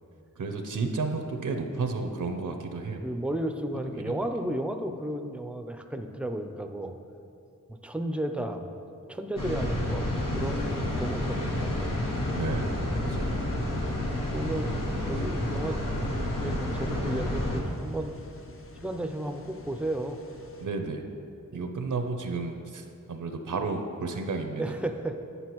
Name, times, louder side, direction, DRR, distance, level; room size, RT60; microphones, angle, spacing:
voice 1, 0.4-3.0 4.0-4.1 12.4-13.3 20.6-21.0 21.5-24.6, right 4 dB, 75° right, 5 dB, 0.6 m, -32 dB
voice 2, 3.0-6.9 7.8-8.7 9.1-10.0 10.3-11.9 14.1-14.7 15.0-15.8 16.4-18.2 18.8-20.2 21.5-21.7 24.6-25.3, right 1 dB, 5° right, 6 dB, 0.4 m, -33 dB
sound 1, 9.4-17.6, left 1 dB, 90° left, 1.0 m, -30 dB
sound 2, 10.3-20.7, left 2 dB, 45° left, 0.6 m, -44 dB
9.5 x 5.5 x 3.0 m, 2.5 s
wide cardioid pair, 70°, 32 cm